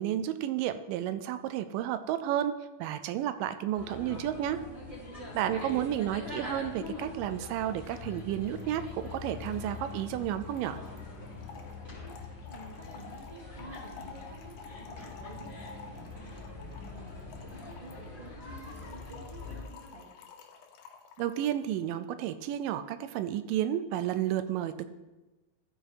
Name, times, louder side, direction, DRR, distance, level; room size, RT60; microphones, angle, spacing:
voice 1, 0.0-2.5 2.8-4.6 5.4-10.8 21.2-24.9, right 11 dB, 85° right, 11 dB, 2.2 m, -32 dB
sound 1, 3.7-19.6, left 3 dB, 20° right, 3.0 m, -43 dB
voice 2, 5.1-5.8 11.9-20.1, right 2 dB, 10° left, -5 dB, 1.6 m, -51 dB
Trickle dribble / Fill (with liquid), 7.8-7.9 8.2-8.3 8.5-21.6, left 5 dB, 75° left, 2.2 m, -52 dB
14.0 x 4.6 x 4.8 m, 1.1 s
omnidirectional pair, 3.8 m